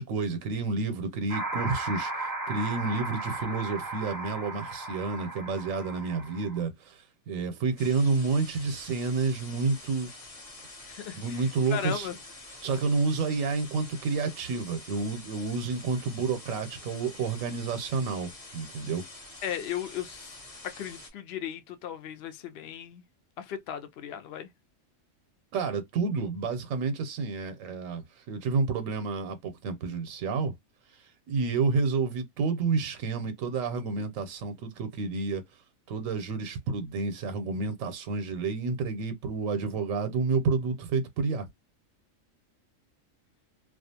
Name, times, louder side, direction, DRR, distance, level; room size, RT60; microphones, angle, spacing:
voice 1, 0.0-10.1 11.1-12.1 12.6-19.0 25.5-30.5 31.3-35.4 35.9-41.5, right 4 dB, 85° right, 1.0 m, -30 dB
sound 1, 1.3-6.6, right 2 dB, 20° right, 0.6 m, -36 dB
sound 2, 7.8-21.1, left 2 dB, 30° left, 0.8 m, -47 dB
voice 2, 10.9-12.2 19.4-20.4 20.6-23.0 23.4-24.5, left 10 dB, 65° left, 0.7 m, -36 dB
2.4 x 2.3 x 2.6 m
omnidirectional pair, 1.4 m